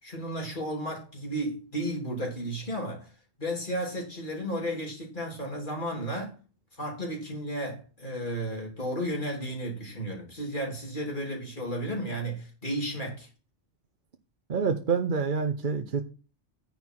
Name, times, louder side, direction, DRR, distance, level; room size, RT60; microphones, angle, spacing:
voice 1, 0.0-3.1 3.4-6.4 6.8-13.3, equal, 40° left, 3.4 m, -33 dB
voice 2, 14.5-16.0, right 5 dB, 45° right, 0.9 m, -27 dB
9.5 x 7.2 x 4.6 m
omnidirectional pair, 1.3 m